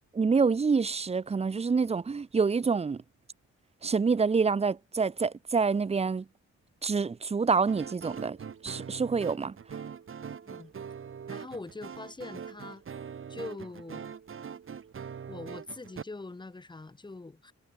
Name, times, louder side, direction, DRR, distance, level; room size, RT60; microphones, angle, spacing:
voice 1, 0.1-3.0 3.8-6.2 6.8-8.4 8.6-9.6, right 5 dB, 20° right, 0.6 m, -27 dB
sound 1, 7.7-16.0, right 7 dB, 45° right, 4.6 m, -42 dB
voice 2, 11.3-12.8 13.3-14.1 15.3-17.5, left 3 dB, 15° left, 2.1 m, -43 dB
wide cardioid pair, 170°, 29 cm